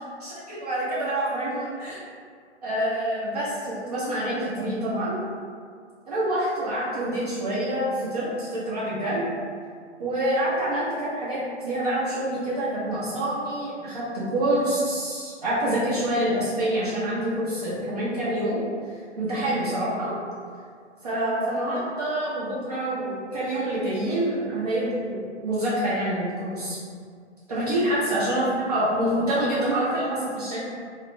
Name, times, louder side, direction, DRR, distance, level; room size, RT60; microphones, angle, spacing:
voice 1, 0.2-2.0 2.6-5.2 6.1-9.3 10.0-18.6 19.2-20.1 21.0-26.8 27.5-30.6, right 1 dB, 35° right, -9 dB, 0.5 m, -26 dB
2.3 x 2.0 x 3.1 m, 2.1 s
figure-of-eight pair, 130°, 35 cm